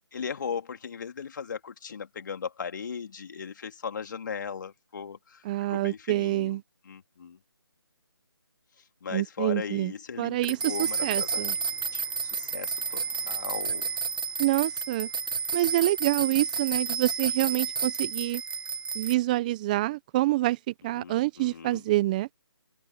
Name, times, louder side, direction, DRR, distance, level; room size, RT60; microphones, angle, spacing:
voice 1, 0.1-6.6 6.8-7.4 9.0-11.6 11.9-13.9 20.9-21.8, left 6 dB, 45° left, 3.2 m, -37 dB
voice 2, 5.4-6.6 9.1-9.9 10.2-10.7 11.0-11.5 14.4-15.1 15.5-18.4 18.9-20.6 20.8-22.3, right 17 dB, 20° right, 0.9 m, -26 dB
sound 1, 10.4-19.1, right 5 dB, 55° right, 0.7 m, -31 dB
open air
figure-of-eight pair, 155°, 14 cm